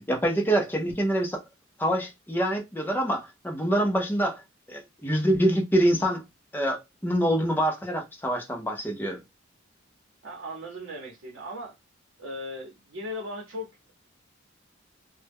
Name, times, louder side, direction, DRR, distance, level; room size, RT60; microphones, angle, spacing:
voice 1, 0.1-1.4 1.8-4.4 4.7-6.2 6.5-9.2, right 1 dB, 10° left, 0.5 m, -25 dB
voice 2, 10.2-11.8 12.2-13.9, left 1 dB, 70° right, 0.8 m, -38 dB
2.1 x 2.0 x 3.4 m
head